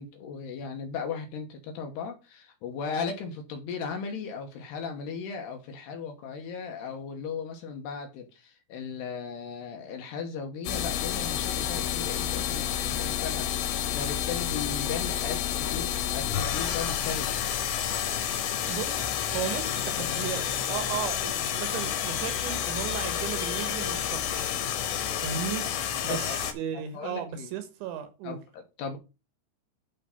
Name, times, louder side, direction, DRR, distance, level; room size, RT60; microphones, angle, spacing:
voice 1, 0.0-15.9 16.1-17.4 26.1-26.4 26.7-27.5 28.2-29.0, left 5 dB, 70° left, 2.9 m, -37 dB
sound 1, 10.7-26.5, left 10 dB, 90° left, 3.9 m, -30 dB
voice 2, 18.7-19.0 19.3-24.5 25.2-25.7 26.0-26.2 26.5-28.4, right 9 dB, 75° right, 3.4 m, -35 dB
11.5 x 3.8 x 5.3 m
omnidirectional pair, 5.6 m